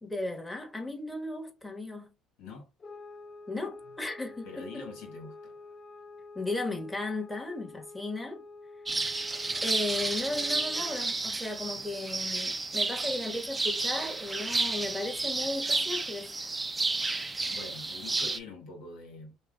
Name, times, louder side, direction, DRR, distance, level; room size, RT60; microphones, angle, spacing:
voice 1, 0.0-2.1 3.5-4.9 6.3-8.4 9.6-16.3, left 2 dB, 10° left, 1.4 m, -35 dB
sound 1, 2.8-11.2, left 3 dB, 35° left, 0.5 m, -48 dB
voice 2, 4.4-5.6 17.5-19.4, left 3 dB, 75° left, 1.3 m, -44 dB
sound 2, 8.9-18.4, right 3 dB, 15° right, 0.5 m, -31 dB
5.6 x 2.3 x 2.3 m
supercardioid pair, 90°, 0 cm